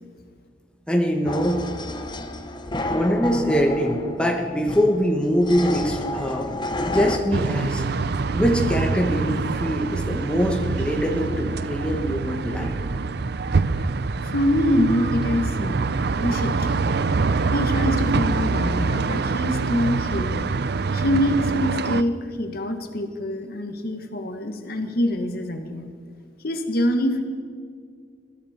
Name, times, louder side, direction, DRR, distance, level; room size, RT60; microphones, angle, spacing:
voice 1, 0.9-1.6 2.9-6.5 6.8-7.8 8.3-12.8, equal, 5° left, 2 dB, 1.3 m, -23 dB
sound 1, 1.3-7.2, left 2 dB, 25° left, 1.0 m, -30 dB
sound 2, 7.3-22.0, right 4 dB, 60° right, 0.5 m, -25 dB
voice 2, 14.2-16.8 17.5-20.5 20.9-25.9 26.4-27.2, left 1 dB, 55° left, 6 dB, 1.6 m, -25 dB
21.5 x 14.0 x 4.4 m, 2.1 s
head